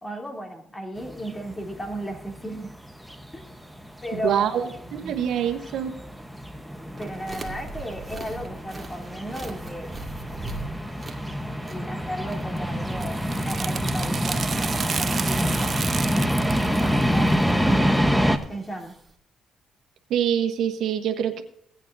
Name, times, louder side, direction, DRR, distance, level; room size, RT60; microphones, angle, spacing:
voice 1, 0.0-2.7 3.3-3.5 4.0-5.1 7.0-10.0 11.7-15.8 16.8-17.5 18.5-19.0, right 1 dB, 20° left, 1 dB, 3.0 m, -35 dB
sound 1, 1.0-18.4, equal, ahead, 1.1 m, -27 dB
voice 2, 4.1-5.9 20.1-21.4, right 9 dB, 75° right, 6 dB, 1.1 m, -25 dB
sound 2, 7.0-19.1, right 2 dB, 20° right, 2.1 m, -42 dB
sound 3, 12.6-18.0, right 6 dB, 45° right, 0.5 m, -32 dB
17.0 x 9.1 x 2.7 m, 0.71 s
cardioid pair, 90°, 0 cm